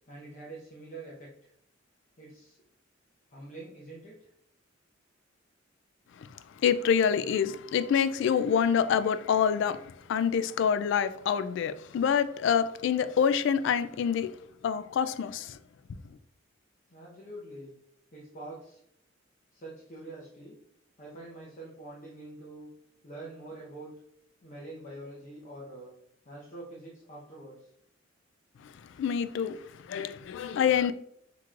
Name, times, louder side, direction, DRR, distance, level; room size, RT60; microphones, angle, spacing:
voice 1, 0.1-1.5 2.2-2.6 3.3-4.1 16.9-17.7 18.1-18.8 19.5-20.6 21.0-22.7 23.0-23.9 24.4-25.9 26.2-27.7, right 2 dB, 40° left, 0.9 m, -45 dB
voice 2, 6.6-9.8 10.1-14.3 14.6-15.6 29.0-29.6 29.9-30.9, left 7 dB, 65° left, 0.3 m, -26 dB
6.0 x 3.0 x 2.4 m
head